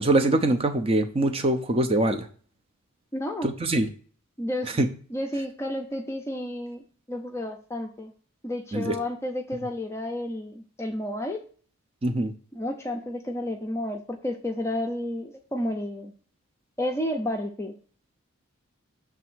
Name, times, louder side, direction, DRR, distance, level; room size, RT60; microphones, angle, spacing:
voice 1, 0.0-2.2 3.4-3.9 4.8-4.9 8.7-9.0 12.0-12.3, right 2 dB, 25° right, 7 dB, 0.7 m, -23 dB
voice 2, 3.1-3.5 4.4-4.8 5.1-6.8 7.1-8.1 8.4-11.4 12.5-16.1 16.8-17.7, left 1 dB, 10° left, 2 dB, 0.6 m, -31 dB
6.8 x 3.4 x 6.1 m, 0.43 s
head